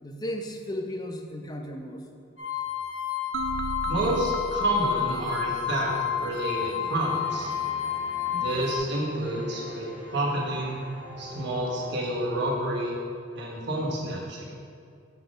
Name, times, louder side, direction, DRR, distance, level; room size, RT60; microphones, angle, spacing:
voice 1, 0.0-2.0, equal, 20° left, 4 dB, 0.5 m, -35 dB
sound 1, 2.4-8.8, left 10 dB, 75° left, 1.2 m, -31 dB
sound 2, 3.3-6.4, right 4 dB, 90° right, 0.4 m, -36 dB
voice 2, 3.9-7.5 8.3-10.8 11.2-12.9 13.3-14.6, right 1 dB, 65° right, -4 dB, 1.3 m, -29 dB
sound 3, 6.6-12.5, equal, 10° right, 0.9 m, -44 dB
6.8 x 4.1 x 5.0 m, 2.4 s
head